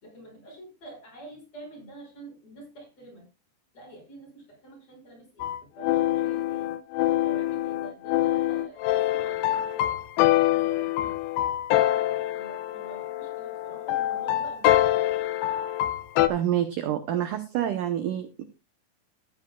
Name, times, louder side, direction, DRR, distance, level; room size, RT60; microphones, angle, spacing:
voice 1, 0.0-3.3 3.7-6.7 7.2-10.0 10.3-11.2 11.9-15.2, right 2 dB, 40° left, 1 dB, 6.5 m, -47 dB
sound 1, 5.4-16.3, left 14 dB, 80° left, 2.6 m, -25 dB
voice 2, 16.3-18.4, right 11 dB, 75° right, 8 dB, 2.0 m, -27 dB
14.0 x 11.5 x 2.3 m, 0.28 s
omnidirectional pair, 4.7 m